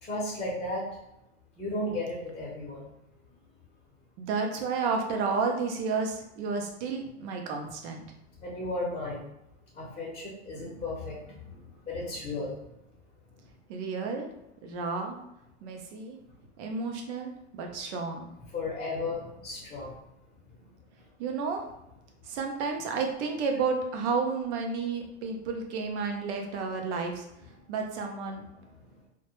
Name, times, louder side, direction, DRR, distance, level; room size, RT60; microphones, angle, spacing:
voice 1, 0.0-0.9 1.6-2.9 8.4-9.2 9.7-11.5 11.9-12.6 18.5-19.9, left 2 dB, 20° left, -4 dB, 0.7 m, -34 dB
voice 2, 4.2-8.0 13.7-14.3 14.6-15.2 15.6-16.2 16.6-18.3 21.2-21.6 22.2-28.4, right 4 dB, 70° right, 3 dB, 0.7 m, -31 dB
2.1 x 2.1 x 3.0 m, 0.84 s
hypercardioid pair, 105°, 36 cm